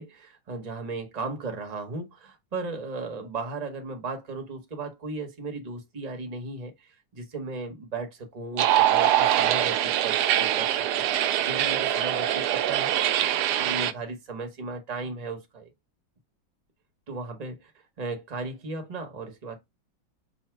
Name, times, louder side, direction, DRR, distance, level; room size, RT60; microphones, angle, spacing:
voice 1, 0.0-12.9 13.5-15.7 17.1-19.6, right 3 dB, 45° right, 0.5 m, -36 dB
sound 1, 8.6-13.9, right 11 dB, 80° right, 0.9 m, -23 dB
5.5 x 2.1 x 4.5 m
omnidirectional pair, 2.2 m